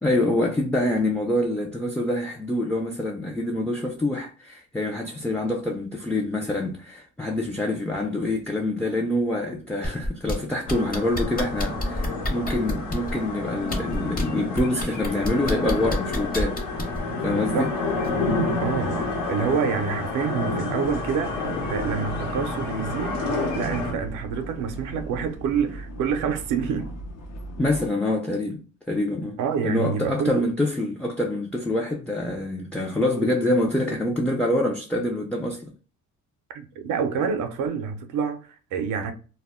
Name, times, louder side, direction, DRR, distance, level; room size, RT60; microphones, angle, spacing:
voice 1, 0.0-16.6 17.2-17.7 27.6-35.7, left 1 dB, 5° left, 0.4 m, -26 dB
sound 1, 9.8-10.3 10.7-13.1 13.6-14.2 14.6-17.0 18.0-18.1, left 1 dB, 30° left, 0.9 m, -28 dB
sound 2, 10.7-23.9, left 2 dB, 85° left, 0.9 m, -29 dB
voice 2, 18.6-26.9 29.4-30.5 36.5-39.1, right 6 dB, 85° right, 0.5 m, -27 dB
sound 3, 20.8-27.9, equal, 60° left, 0.6 m, -38 dB
2.1 x 2.0 x 3.4 m
cardioid pair, 90°, 30 cm